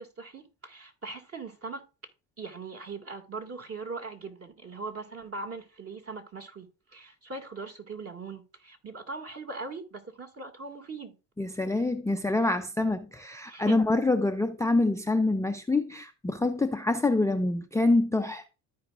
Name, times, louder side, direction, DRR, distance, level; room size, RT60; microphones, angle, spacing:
voice 1, 0.0-1.8 2.4-6.7 6.9-11.2 12.1-12.5 13.5-13.8, right 3 dB, 35° right, 2.1 m, -40 dB
voice 2, 11.4-18.5, left 2 dB, 10° left, 0.5 m, -26 dB
13.5 x 4.8 x 2.5 m
supercardioid pair, 70°, 39 cm